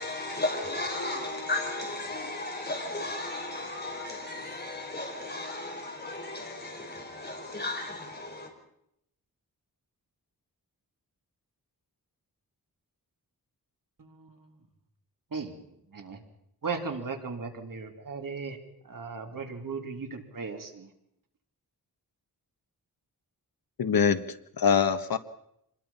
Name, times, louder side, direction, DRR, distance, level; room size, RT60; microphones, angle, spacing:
voice 1, 0.0-8.5, left 2 dB, 25° left, 2 dB, 5.2 m, -35 dB
voice 2, 16.6-18.6 18.9-20.9, right 4 dB, 60° right, 4 dB, 3.2 m, -36 dB
voice 3, 23.8-25.2, left 7 dB, 70° left, 10 dB, 1.4 m, -24 dB
26.0 x 21.0 x 5.7 m, 0.76 s
wide cardioid pair, 120°, 37 cm